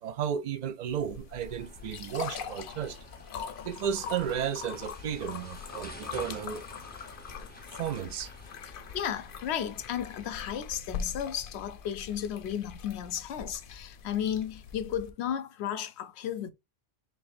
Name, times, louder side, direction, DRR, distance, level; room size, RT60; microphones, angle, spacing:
voice 1, 0.0-3.0 3.6-6.6 7.8-8.3, right 8 dB, 55° right, 0.5 m, -33 dB
sound 1, 0.9-15.1, left 6 dB, 60° left, 0.7 m, -42 dB
sound 2, 1.4-10.6, left 1 dB, 10° left, 0.7 m, -50 dB
voice 2, 8.6-16.5, left 9 dB, 90° left, 0.9 m, -34 dB
4.6 x 3.4 x 2.5 m
omnidirectional pair, 1.1 m